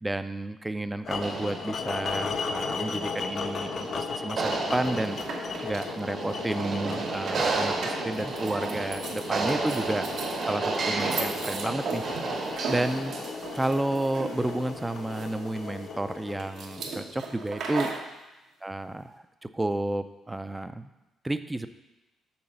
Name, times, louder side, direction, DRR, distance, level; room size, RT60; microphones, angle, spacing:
voice 1, 0.0-5.2 5.6-10.1 10.5-12.0 12.7-13.1 13.5-17.9 18.6-19.2 19.5-20.9 21.2-21.7, right 1 dB, 15° right, 11 dB, 0.4 m, -31 dB
sound 1, 1.0-17.2, left 5 dB, 55° left, 0.6 m, -36 dB
sound 2, 1.2-13.5, right 3 dB, 60° right, 1.2 m, -33 dB
sound 3, 4.8-18.1, right 4 dB, 80° right, 1.2 m, -38 dB
7.1 x 3.9 x 6.6 m, 1.0 s
cardioid pair, 90°, 0 cm